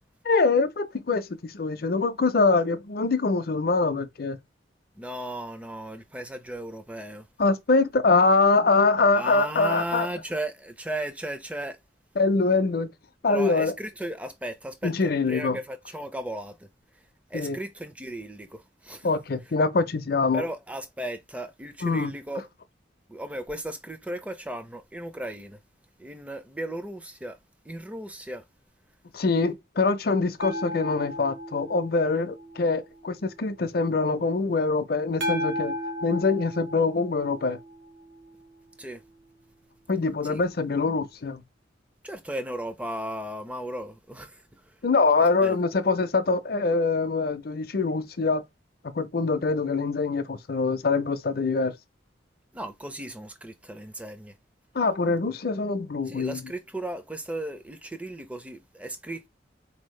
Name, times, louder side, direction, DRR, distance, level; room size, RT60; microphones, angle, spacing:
voice 1, 0.2-4.4 7.4-10.1 12.2-12.9 13.2-13.7 14.8-15.6 17.3-17.6 19.0-20.5 21.8-22.1 29.1-35.7 36.0-37.6 39.9-41.4 44.8-48.4 48.9-51.7 54.7-56.4, left 3 dB, 55° left, 0.5 m, -24 dB
voice 2, 5.0-7.3 9.1-11.8 13.3-16.7 17.3-19.1 20.3-22.5 23.1-25.6 26.0-27.4 27.6-28.4 38.8-39.0 40.2-40.4 42.0-44.7 45.1-45.6 52.5-54.4 56.0-59.3, right 1 dB, 5° right, 0.5 m, -36 dB
sound 1, 30.4-33.2 35.2-38.4 41.3-41.4, left 1 dB, 75° right, 1.0 m, -35 dB
4.2 x 2.8 x 3.1 m
head